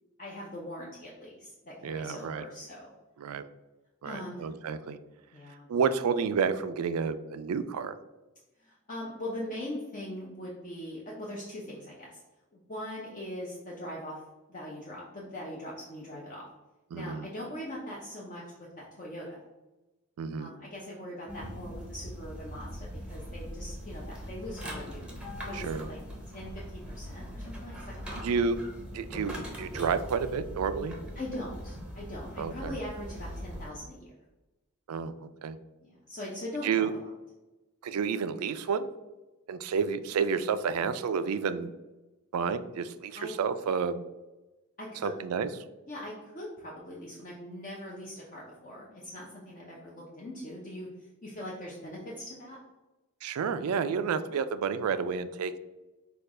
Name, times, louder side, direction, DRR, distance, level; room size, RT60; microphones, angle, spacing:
voice 1, 0.2-2.9 4.0-4.5 5.3-5.7 8.6-12.2 12.5-14.2 14.5-16.5 16.9-18.4 18.8-19.4 20.4-25.1 25.5-26.0 26.3-28.3 31.2-34.1 35.8-36.9 43.1-43.3 44.8-45.1 45.9-52.6, left 1 dB, 35° left, -5 dB, 0.7 m, -41 dB
voice 2, 1.8-2.4 3.2-3.4 4.0-5.0 5.7-8.0 16.9-17.3 20.2-20.5 25.5-25.9 28.1-28.6 28.9-31.0 32.4-32.8 34.9-35.6 36.6-36.9 37.8-38.9 39.5-41.7 42.3-44.0 45.0-45.5 53.2-55.6, right 6 dB, 85° right, 12 dB, 0.4 m, -30 dB
sound 1, 21.3-33.7, equal, 5° right, 0.7 m, -41 dB
4.4 x 2.4 x 4.8 m, 1.0 s
head